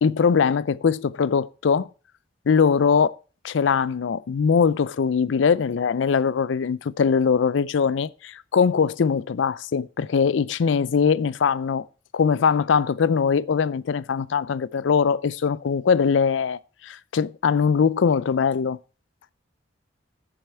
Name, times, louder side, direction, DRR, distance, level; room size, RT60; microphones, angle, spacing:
voice 1, 0.0-1.9 2.5-3.1 3.4-11.9 12.1-18.8, left 6 dB, 75° left, 0.4 m, -21 dB
11.5 x 7.0 x 4.3 m
head